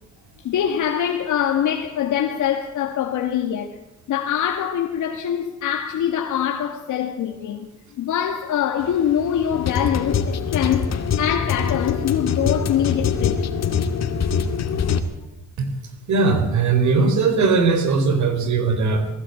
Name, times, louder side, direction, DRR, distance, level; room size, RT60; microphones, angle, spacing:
voice 1, 0.4-3.8 4.1-7.7 8.0-10.9 11.2-13.4, left 9 dB, 75° left, 1.9 m, -23 dB
sound 1, 8.8-15.0, left 6 dB, 60° left, 2.2 m, -24 dB
voice 2, 16.1-19.1, right 4 dB, 70° right, 4.2 m, -19 dB
20.0 x 16.0 x 8.5 m
cardioid pair, 90°, 30 cm